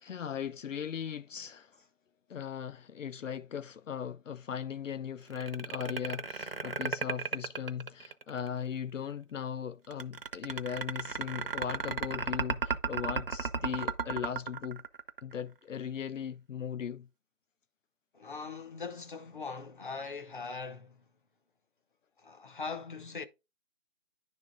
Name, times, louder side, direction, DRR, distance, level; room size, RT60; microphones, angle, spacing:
voice 1, 0.0-1.7 2.3-14.8 15.2-17.1, left 8 dB, 75° left, 0.5 m, -38 dB
sound 1, 5.3-8.5 9.9-15.4, right 5 dB, 45° right, 0.5 m, -34 dB
voice 2, 18.1-21.0 22.2-23.2, left 4 dB, 40° left, 0.7 m, -41 dB
10.5 x 3.5 x 3.8 m
figure-of-eight pair, 165°, 39 cm